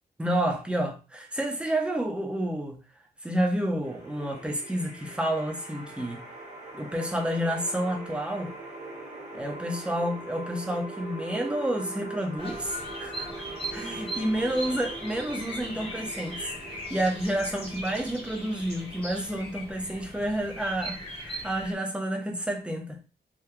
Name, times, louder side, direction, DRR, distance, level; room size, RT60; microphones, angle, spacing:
voice 1, 0.2-2.8 3.2-6.3 6.7-8.5 9.3-13.4 13.7-23.0, right 1 dB, 5° right, 0.6 m, -30 dB
sound 1, 3.8-22.8, right 2 dB, 45° right, 1.1 m, -42 dB
Bird vocalization bird call bird song, 12.4-21.7, equal, 35° left, 1.0 m, -39 dB
3.5 x 2.2 x 2.8 m
wide cardioid pair, 165°, 17 cm